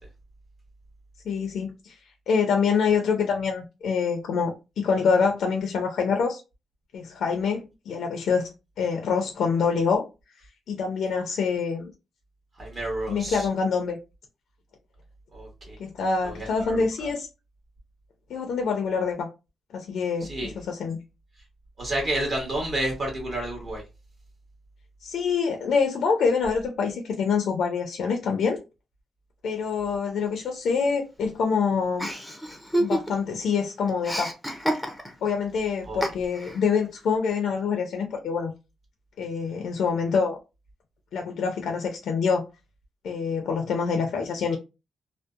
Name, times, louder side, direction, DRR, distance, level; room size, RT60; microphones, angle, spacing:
voice 1, 1.3-2.0 2.3-6.4 6.9-8.5 8.8-10.0 10.7-11.9 13.1-14.0 15.8-17.3 18.3-19.3 19.7-21.0 25.0-28.6 29.4-32.1 32.8-34.3 35.2-38.5 39.2-40.4 41.1-42.5 43.0-44.6, left 5 dB, 70° left, 0.5 m, -26 dB
voice 2, 12.6-13.5 15.3-15.8 16.2-17.1 20.2-20.6 21.8-23.8 35.8-36.0, right 1 dB, 40° right, 1.0 m, -30 dB
Chuckle chortle, 32.0-33.4 33.6-35.3 36.0-36.6, equal, ahead, 0.5 m, -28 dB
2.7 x 2.0 x 2.4 m
cardioid pair, 135°, 0 cm